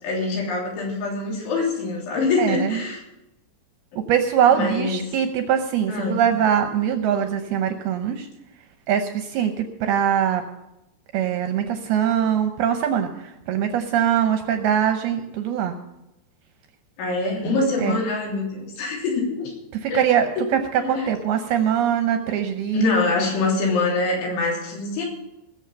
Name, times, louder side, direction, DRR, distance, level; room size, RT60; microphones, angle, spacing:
voice 1, 0.0-3.0 4.5-5.0 5.9-6.2 17.0-19.5 19.9-20.0 20.4-21.1 22.7-25.1, left 3 dB, 85° left, -2 dB, 5.7 m, -24 dB
voice 2, 2.4-2.8 4.0-8.3 8.9-10.4 11.1-15.8 17.4-18.0 19.7-22.9, right 9 dB, 75° right, 6 dB, 2.4 m, -22 dB
19.0 x 7.2 x 6.8 m, 0.91 s
omnidirectional pair, 5.3 m